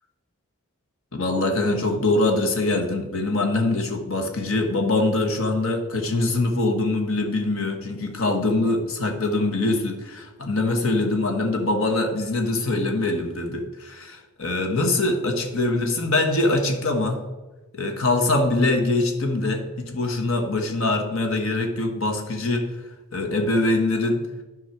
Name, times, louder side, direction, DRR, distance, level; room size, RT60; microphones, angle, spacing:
voice 1, 1.1-17.2 17.7-22.7 23.1-24.2, left 2 dB, 65° left, 3 dB, 1.3 m, -23 dB
10.5 x 5.6 x 4.6 m, 1.2 s
head